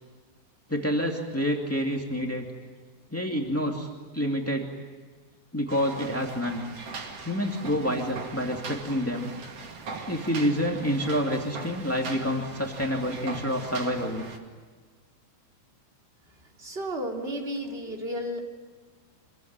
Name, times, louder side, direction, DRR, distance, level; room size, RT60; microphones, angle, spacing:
voice 1, 0.7-2.5 3.1-3.9 4.1-4.7 5.5-6.6 7.2-9.3 10.1-14.3, equal, 10° left, 1 dB, 0.8 m, -28 dB
sound 1, 5.7-14.4, right 4 dB, 40° right, 2.9 m, -40 dB
voice 2, 16.6-18.4, equal, 15° right, 0 dB, 2.9 m, -33 dB
27.0 x 23.0 x 9.6 m, 1.4 s
omnidirectional pair, 5.1 m